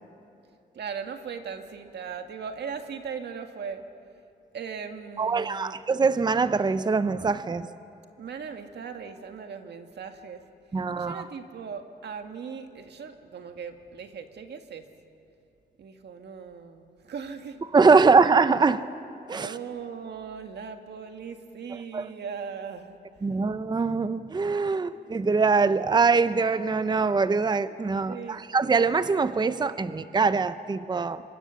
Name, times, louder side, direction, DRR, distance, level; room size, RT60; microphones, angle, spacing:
voice 1, 0.7-3.8 4.5-5.8 8.2-10.4 10.9-14.8 15.8-17.6 18.0-18.3 19.3-23.0 28.1-28.4, right 6 dB, 70° right, 6 dB, 1.8 m, -38 dB
voice 2, 5.2-7.7 10.7-11.2 17.7-18.8 19.3-19.5 21.9-22.0 23.2-31.2, right 4 dB, 25° right, 13 dB, 0.7 m, -23 dB
26.0 x 25.0 x 7.1 m, 2.7 s
cardioid pair, 100°, 18 cm